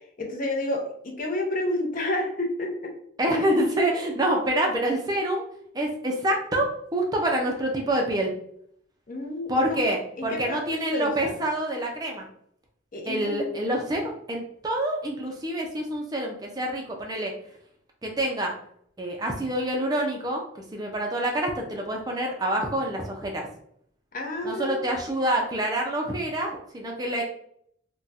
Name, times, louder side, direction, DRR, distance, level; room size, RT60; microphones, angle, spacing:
voice 1, 0.2-2.9 3.3-3.5 9.1-9.9 10.2-11.4 12.9-13.6 24.1-24.8, left 1 dB, 45° left, 1 dB, 0.6 m, -30 dB
voice 2, 3.2-5.4 5.7-8.3 9.5-12.2 13.1-17.3 18.0-18.5 19.0-23.5 24.4-27.2, right 1 dB, 20° right, 0 dB, 0.4 m, -27 dB
2.4 x 2.2 x 4.0 m, 0.66 s
head